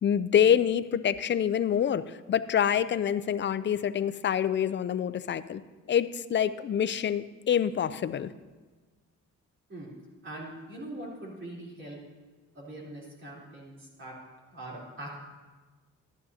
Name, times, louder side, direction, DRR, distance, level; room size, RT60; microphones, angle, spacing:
voice 1, 0.0-5.6 5.9-8.3, left 9 dB, 40° left, 14 dB, 0.5 m, -26 dB
voice 2, 10.2-12.0 12.5-14.2 14.5-15.2, right 1 dB, 40° right, -6 dB, 3.6 m, -42 dB
14.0 x 11.5 x 2.8 m, 1.3 s
cardioid pair, 90°, 30 cm